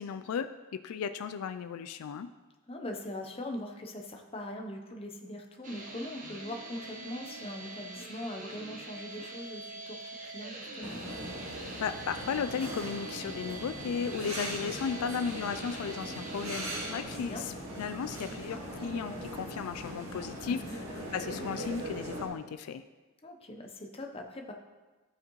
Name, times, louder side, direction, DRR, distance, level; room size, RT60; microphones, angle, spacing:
voice 1, 0.0-2.3 11.8-20.8 21.1-22.8, left 6 dB, 80° left, 11 dB, 0.4 m, -35 dB
voice 2, 2.7-11.0 15.0-15.1 17.1-17.5 20.4-20.8 23.2-24.5, left 1 dB, 25° left, 2 dB, 0.8 m, -41 dB
sound 1, 5.6-17.0, right 2 dB, 35° right, 1.0 m, -44 dB
sound 2, 10.8-22.3, equal, 70° right, 1.9 m, -40 dB
14.5 x 5.0 x 3.1 m, 1.2 s
head